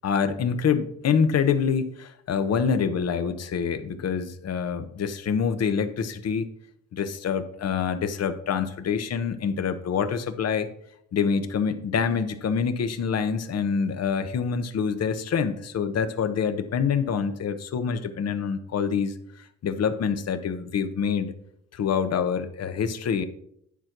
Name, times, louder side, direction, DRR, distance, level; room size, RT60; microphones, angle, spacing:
voice 1, 0.0-6.5 6.9-10.7 11.1-21.3 21.7-23.2, left 6 dB, 55° left, 10 dB, 1.0 m, -26 dB
11.0 x 4.5 x 5.9 m, 0.70 s
cardioid pair, 90°, 30 cm